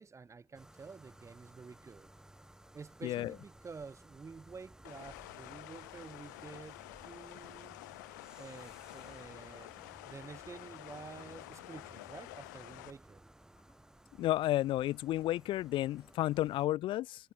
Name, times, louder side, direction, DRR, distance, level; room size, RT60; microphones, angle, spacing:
voice 1, 0.0-2.1 2.7-7.8 8.4-9.7 10.0-13.2, right 5 dB, 30° right, 5.5 m, -50 dB
sound 1, 0.5-16.7, right 1 dB, 5° right, 2.1 m, -58 dB
sound 2, 4.8-12.9, left 22 dB, 80° left, 1.5 m, -50 dB
voice 2, 14.2-17.3, left 15 dB, 60° left, 0.6 m, -32 dB
hypercardioid pair, 60°, 10 cm